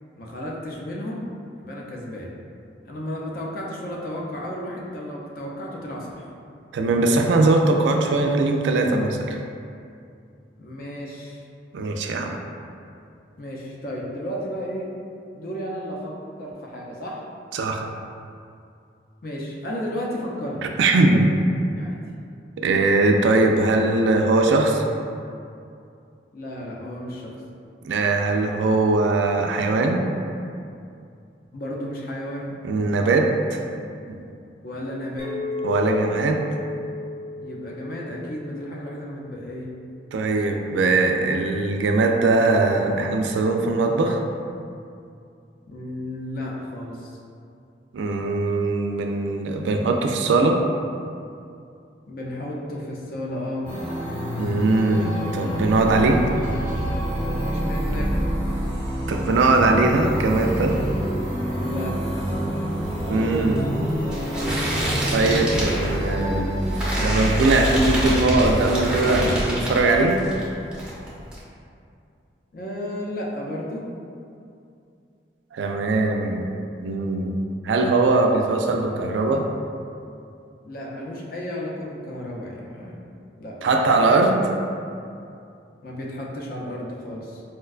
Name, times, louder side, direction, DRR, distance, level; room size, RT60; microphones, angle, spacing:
voice 1, 0.2-1.2 1.6-2.3 2.9-6.3 10.6-11.5 13.4-14.9 15.3-17.2 19.2-20.6 20.9-21.2 21.7-21.9 26.3-27.3 31.5-32.5 34.6-35.3 37.4-39.8 45.7-47.1 52.1-53.7 56.0-56.2 56.5-56.8 57.0-58.1 61.5-62.0 72.5-73.9 80.6-83.0 83.4-83.6 85.8-87.4, left 1 dB, 55° left, -3 dB, 0.5 m, -33 dB
voice 2, 6.7-9.4 11.7-12.4 17.5-17.9 20.6-21.3 22.6-24.8 27.8-30.1 32.6-33.6 34.1-34.2 35.6-36.4 40.1-44.2 47.9-50.7 54.4-56.3 59.1-60.8 63.1-63.8 65.1-66.7 67.0-70.3 75.5-76.5 76.8-79.5 83.6-84.5, right 2 dB, 90° right, 3 dB, 0.3 m, -21 dB
Chink clink, 35.2-39.7, left 3 dB, 80° left, 0.9 m, -34 dB
sound 1, 53.6-69.9, equal, 30° left, 0.8 m, -27 dB
sound 2, 62.7-70.4 70.7-71.4, right 1 dB, 5° right, 0.5 m, -27 dB
4.4 x 2.2 x 2.3 m, 2.5 s
head